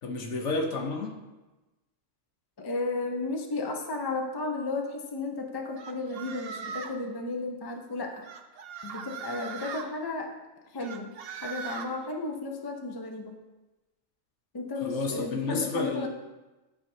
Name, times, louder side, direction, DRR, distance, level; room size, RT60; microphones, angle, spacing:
voice 1, 0.0-1.2 14.8-16.1, left 3 dB, 60° left, 2 dB, 1.1 m, -31 dB
voice 2, 2.6-8.2 8.8-10.3 10.7-11.1 11.4-13.4 14.5-16.1, left 3 dB, 30° left, 3 dB, 0.4 m, -33 dB
sound 1, 5.8-7.0 8.2-9.9 10.8-11.9, right 6 dB, 60° right, 0.7 m, -39 dB
11.5 x 4.9 x 2.7 m, 1.1 s
omnidirectional pair, 1.5 m